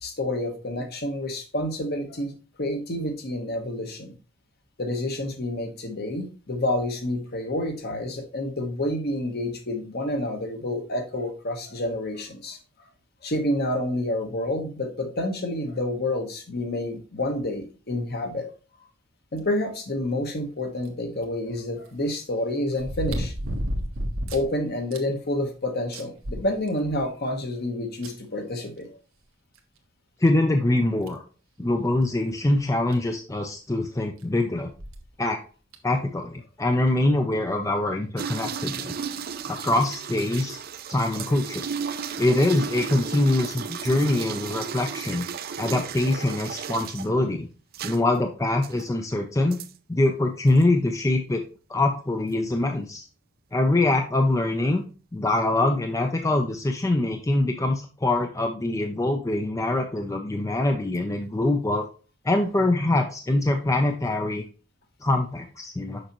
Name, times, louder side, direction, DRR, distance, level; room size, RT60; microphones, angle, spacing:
voice 1, 0.0-2.3 2.6-4.1 4.8-12.6 13.2-18.5 19.3-23.3 24.3-28.9, left 1 dB, 50° left, 5 dB, 1.2 m, -29 dB
sound 1, 20.9-21.0 22.8-24.5 24.9-25.0 25.5-25.6 25.9-27.0 28.0-28.1 29.6-29.7 30.2-30.3 31.1-31.3 32.6-32.7 32.9-33.0 34.7-35.0 35.7-35.8, equal, 90° right, 1.1 m, -31 dB
voice 2, 30.2-31.2 31.6-34.7 35.2-35.4 35.8-38.9 39.5-40.6 40.9-41.6 42.2-45.2 45.6-47.5 47.8-49.6 49.9-51.4 51.7-53.0 53.5-54.8 55.1-61.8 62.2-64.4 65.0-66.0, left 2 dB, 15° left, 4 dB, 0.5 m, -24 dB
sound 2, 38.2-47.1 47.7-48.0 48.6-48.8 49.5-49.7 50.5-50.6, right 7 dB, 50° right, 0.5 m, -34 dB
6.5 x 5.6 x 3.0 m, 0.36 s
head